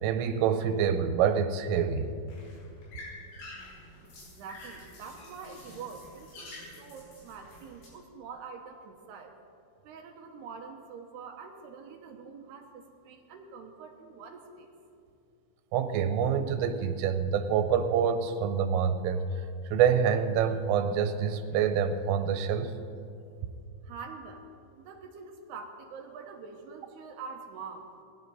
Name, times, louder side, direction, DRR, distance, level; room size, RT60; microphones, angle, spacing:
voice 1, 0.0-2.1 15.7-19.3 19.7-22.7, right 7 dB, 90° right, 9 dB, 3.4 m, -26 dB
sound 1, 1.7-7.9, left 1 dB, 75° left, 7.9 m, -48 dB
voice 2, 4.0-9.3 9.8-14.7 23.8-24.5 24.7-27.9, right 5 dB, 70° right, 3 dB, 2.6 m, -45 dB
20.5 x 16.0 x 4.1 m, 2.5 s
omnidirectional pair, 5.7 m